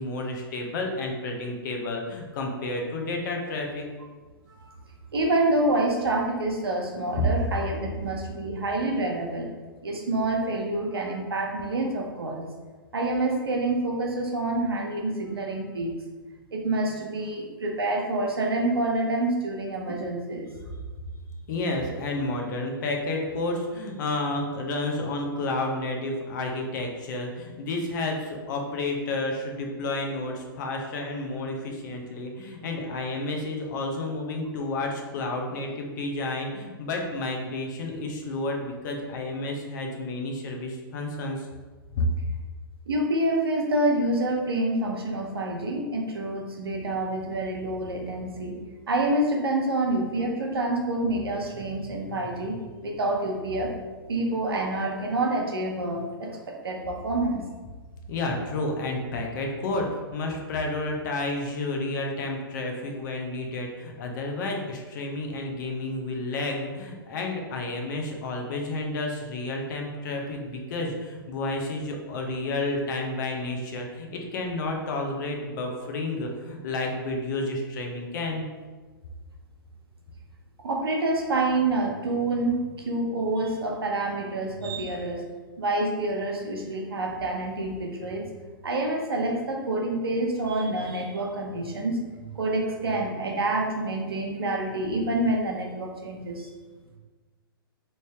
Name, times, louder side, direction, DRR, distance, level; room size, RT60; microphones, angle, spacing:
voice 1, 0.0-3.9 21.5-41.5 41.9-42.1 58.1-78.4, left 2 dB, 55° left, 1 dB, 0.7 m, -31 dB
voice 2, 5.1-9.5 9.8-12.4 12.9-15.9 16.5-20.5 42.9-48.6 48.9-53.7 54.1-57.4 80.6-85.2 85.6-88.3 88.6-92.0 92.4-96.5, right 2 dB, 85° right, 1 dB, 0.7 m, -27 dB
3.2 x 2.7 x 3.3 m, 1.4 s
hypercardioid pair, 125°, 12 cm